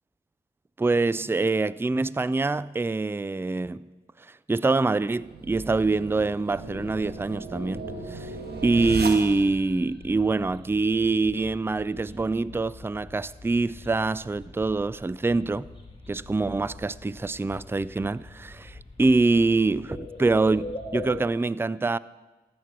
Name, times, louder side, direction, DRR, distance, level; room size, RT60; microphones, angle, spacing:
voice 1, 0.8-3.9 4.2-7.8 8.1-8.4 8.6-15.7 16.1-22.0, right 3 dB, 15° right, 0.4 m, -25 dB
sound 1, 5.1-9.7, right 3 dB, 65° right, 1.6 m, -36 dB
sound 2, 7.5-21.2, left 2 dB, 30° left, 2.3 m, -43 dB
14.0 x 6.1 x 8.2 m
cardioid pair, 45°, 18 cm